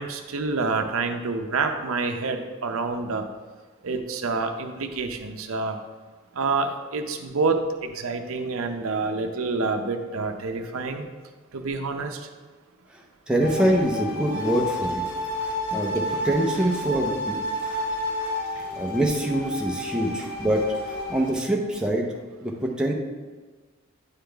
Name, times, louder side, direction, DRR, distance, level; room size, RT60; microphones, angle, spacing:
voice 1, 0.0-3.2 3.8-5.8 6.3-11.1 11.5-12.2, right 3 dB, 80° right, 6 dB, 0.6 m, -27 dB
voice 2, 13.3-15.0 15.7-17.4 18.8-22.1 22.4-22.9, right 1 dB, 5° right, -1 dB, 0.6 m, -24 dB
sound 1, 13.4-21.3, left 1 dB, 30° left, 1.7 m, -30 dB
9.5 x 3.8 x 3.4 m, 1.4 s
head